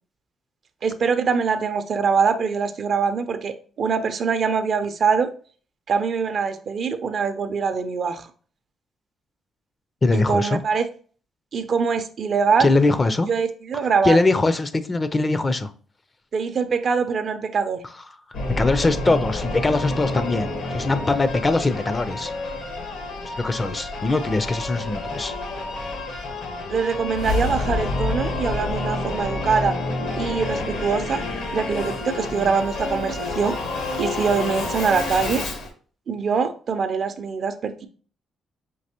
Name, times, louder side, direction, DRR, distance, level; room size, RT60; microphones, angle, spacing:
voice 1, 0.8-5.3 5.9-8.3 10.1-10.9 11.5-12.7 13.3-14.2 16.3-17.8 26.7-29.8 30.2-31.2 31.5-35.4 36.1-37.9, right 5 dB, 55° right, 0.5 m, -23 dB
voice 2, 10.0-10.6 12.6-13.3 14.0-15.7 18.6-22.3 23.4-25.3, left 2 dB, 25° left, 0.4 m, -21 dB
Singing / Musical instrument, 18.3-35.7, left 2 dB, 85° left, 1.2 m, -28 dB
5.3 x 2.9 x 2.8 m
cardioid pair, 90°, 0 cm